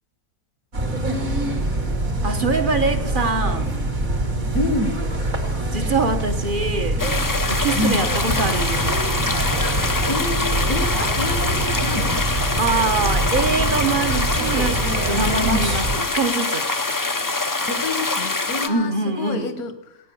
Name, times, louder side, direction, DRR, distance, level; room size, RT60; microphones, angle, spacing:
sound 1, 0.7-16.0, right 1 dB, 65° right, 2.9 m, -24 dB
voice 1, 2.2-3.7 5.7-7.0 7.5-9.0 12.6-16.7 18.7-19.5, right 3 dB, 35° right, 7 dB, 1.3 m, -24 dB
voice 2, 4.5-5.0 7.7-8.0 10.1-12.3 15.4-15.7 17.7-20.0, left 2 dB, 80° left, 10 dB, 1.9 m, -27 dB
sound 2, 7.0-18.7, left 3 dB, 25° left, 0.4 m, -24 dB
17.0 x 9.3 x 7.0 m, 0.99 s
omnidirectional pair, 1.5 m